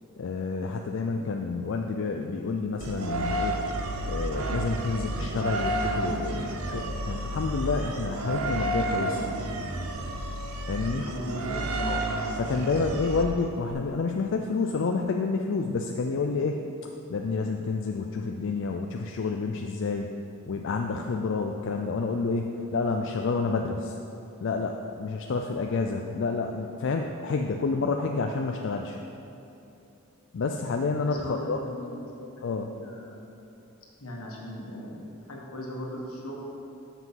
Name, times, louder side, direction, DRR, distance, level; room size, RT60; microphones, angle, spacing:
voice 1, 0.2-3.6 4.1-9.2 10.7-11.1 11.8-12.0 12.3-16.6 17.1-20.1 20.5-23.9 24.4-29.0 30.3-31.6 32.4-32.7, left 4 dB, 55° left, 3 dB, 0.4 m, -29 dB
sound 1, 2.8-13.7, right 1 dB, 80° right, 0.7 m, -31 dB
voice 2, 11.0-11.7 12.3-12.4 31.0-33.2 34.0-36.3, equal, 80° left, -2 dB, 1.5 m, -38 dB
7.2 x 5.9 x 5.7 m, 2.9 s
head